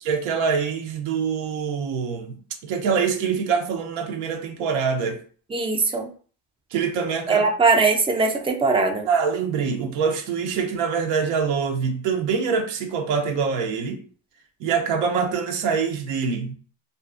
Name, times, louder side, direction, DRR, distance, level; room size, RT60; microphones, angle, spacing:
voice 1, 0.0-2.4 2.6-5.2 6.7-7.5 9.0-14.0 14.6-16.5, right 6 dB, 85° right, 0.7 m, -24 dB
voice 2, 5.5-6.1 7.3-9.1, right 4 dB, 15° right, 0.3 m, -20 dB
2.5 x 2.3 x 2.4 m
cardioid pair, 100°, 43 cm